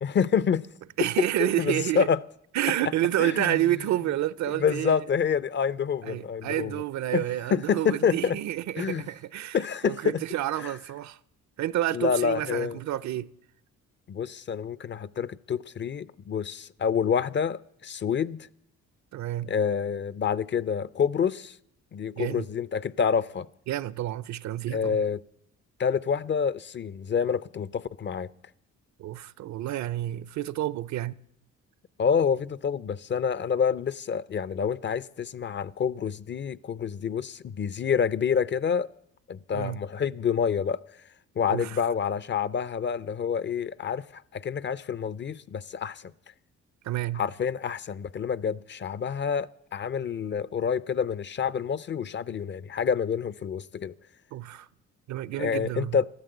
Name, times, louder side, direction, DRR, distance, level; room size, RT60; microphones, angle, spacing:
voice 1, 0.0-0.7 1.4-2.2 3.2-3.6 4.5-6.8 7.1-7.2 7.5-8.4 8.8-9.0 9.5-10.2 10.6-10.7 11.9-12.8 14.1-18.5 19.5-21.6 21.9-23.5 24.7-25.2 25.8-28.3 32.0-38.9 39.3-40.8 41.4-46.1 47.1-53.9 55.4-56.1, left 7 dB, 40° left, 0.5 m, -27 dB
voice 2, 1.0-2.1 2.5-5.0 6.0-9.6 9.8-11.2 11.6-13.3 19.1-19.5 22.2-22.5 23.7-25.0 29.0-31.2 39.5-39.8 41.5-41.8 46.8-47.2 54.3-54.7 55.1-56.0, right 13 dB, 65° right, 0.6 m, -29 dB
13.0 x 12.5 x 7.9 m
cardioid pair, 90°, 30 cm